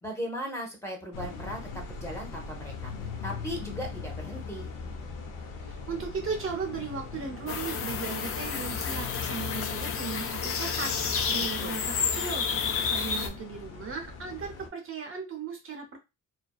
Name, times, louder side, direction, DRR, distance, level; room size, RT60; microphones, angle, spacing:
voice 1, 0.0-2.9 3.2-4.7 11.3-11.8, equal, 10° left, -1 dB, 0.7 m, -38 dB
sound 1, 1.1-14.7, left 5 dB, 90° left, 0.6 m, -40 dB
voice 2, 5.6-16.0, right 5 dB, 45° right, 3 dB, 0.6 m, -37 dB
sound 2, 7.5-13.3, left 6 dB, 45° left, 0.4 m, -30 dB
2.5 x 2.2 x 2.3 m, 0.24 s
cardioid pair, 125°, 31 cm